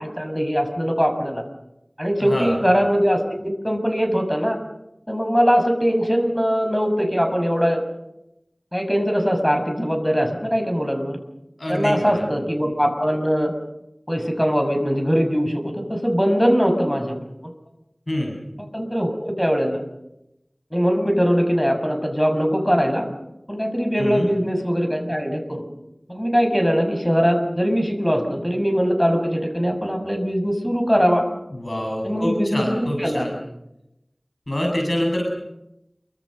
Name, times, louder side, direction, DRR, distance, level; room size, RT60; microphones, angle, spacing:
voice 1, 0.0-1.4 2.0-4.6 5.1-7.8 8.7-11.2 11.7-13.5 14.1-17.2 18.7-19.8 20.7-23.1 23.5-25.6 26.1-31.3 32.0-33.3, equal, 5° left, 5 dB, 6.4 m, -21 dB
voice 2, 2.2-2.6 11.6-12.3 18.1-18.4 24.0-24.3 31.5-33.4 34.5-35.3, left 1 dB, 55° left, 0 dB, 7.6 m, -25 dB
28.5 x 24.5 x 6.5 m, 0.88 s
wide cardioid pair, 40°, 0 cm